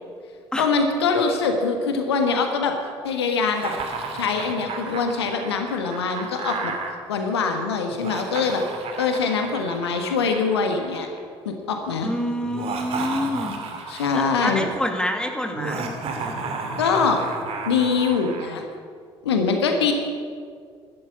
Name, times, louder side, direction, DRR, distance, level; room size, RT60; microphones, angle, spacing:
voice 1, 0.6-2.7 3.0-3.7 4.1-6.7 7.1-8.6 9.0-11.1 11.4-12.1 13.9-14.7 16.8-17.2 17.7-18.6 19.2-19.9, left 5 dB, 75° left, 5 dB, 1.4 m, -23 dB
Laughter, 3.5-6.9 7.9-11.2 12.4-14.4 15.5-18.5, right 4 dB, 45° right, 2.3 m, -33 dB
voice 2, 12.0-13.6 13.9-15.8, left 1 dB, 5° left, 3 dB, 2.3 m, -27 dB
12.5 x 12.0 x 8.3 m, 2.1 s
figure-of-eight pair, 50°, 14 cm